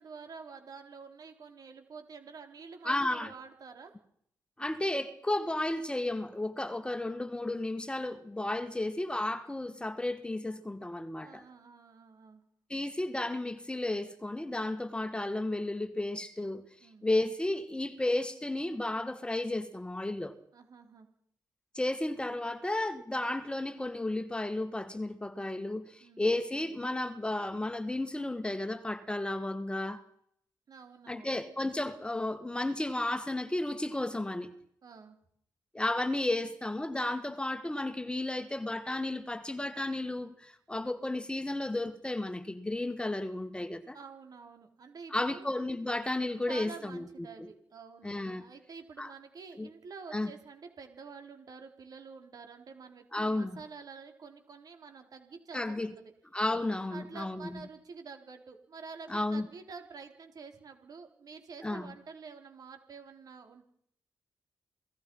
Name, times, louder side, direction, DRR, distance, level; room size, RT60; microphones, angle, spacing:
voice 1, 0.0-3.9 11.1-12.4 16.8-17.1 20.5-21.1 26.0-26.3 30.7-31.4 34.8-35.2 43.9-45.5 46.5-56.1 56.9-63.6, right 5 dB, 60° right, 4.2 m, -49 dB
voice 2, 2.8-3.3 4.6-11.4 12.7-16.6 17.0-20.4 21.7-30.0 31.1-34.6 35.7-44.0 45.1-47.5 48.0-48.4 49.0-49.1 49.6-49.7 50.1-50.3 53.1-53.6 55.5-55.9 56.3-57.5 59.1-59.4 61.6-61.9, left 2 dB, 15° left, 1.9 m, -33 dB
28.0 x 18.5 x 5.7 m
cardioid pair, 75°, 7 cm